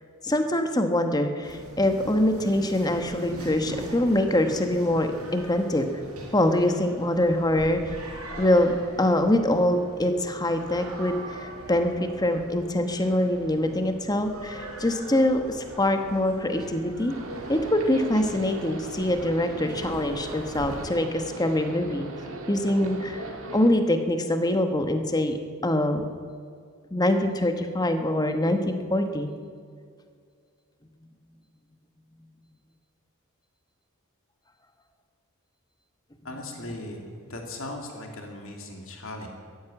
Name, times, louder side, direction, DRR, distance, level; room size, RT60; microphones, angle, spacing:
voice 1, 0.2-5.9 6.3-8.0 8.4-17.1 17.5-22.1 22.5-25.4 25.6-26.0 26.9-29.3 36.3-36.7, left 1 dB, 15° left, 6 dB, 1.1 m, -24 dB
sound 1, 1.4-20.9, right 1 dB, 80° right, 4.3 m, -42 dB
sound 2, 17.1-23.7, right 2 dB, 65° right, 2.0 m, -39 dB
voice 2, 36.2-39.3, left 1 dB, 60° left, 2 dB, 2.5 m, -38 dB
14.0 x 10.5 x 9.0 m, 2.2 s
head